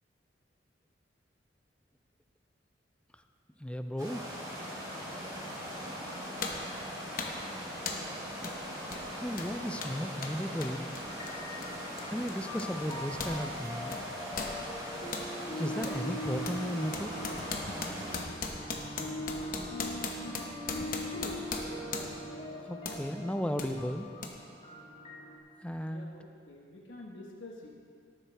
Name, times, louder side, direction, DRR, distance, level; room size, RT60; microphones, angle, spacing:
voice 1, 3.6-4.3 9.2-10.9 12.1-14.0 15.6-17.3 22.6-24.1 25.6-26.1, equal, 5° left, 7 dB, 0.4 m, -35 dB
sound 1, 4.0-18.2, equal, 20° right, 2.8 m, -41 dB
sound 2, 5.5-5.7 6.4-6.7 7.2-7.5 7.9-8.1 8.4-8.6 8.9-13.4 13.7-15.3 15.8-16.0 16.4-22.3 22.8-23.0 23.6-23.7 24.2-24.3, left 4 dB, 45° left, 1.0 m, -39 dB
sound 3, 11.1-25.4, equal, 30° left, 1.7 m, -42 dB
voice 2, 19.7-20.4 20.7-22.1 25.8-27.7, left 1 dB, 75° left, -2 dB, 1.3 m, -47 dB
18.0 x 8.9 x 3.4 m, 2.2 s
head